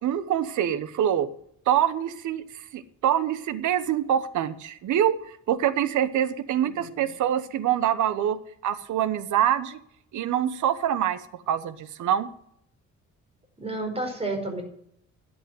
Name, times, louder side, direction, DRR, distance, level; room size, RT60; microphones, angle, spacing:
voice 1, 0.0-1.3 1.7-9.8 10.1-12.3, right 10 dB, 75° right, 14 dB, 1.1 m, -25 dB
voice 2, 6.6-7.1 13.6-14.6, right 2 dB, 20° right, 4 dB, 5.0 m, -31 dB
11.5 x 8.6 x 7.7 m, 0.71 s
cardioid pair, 90°, 30 cm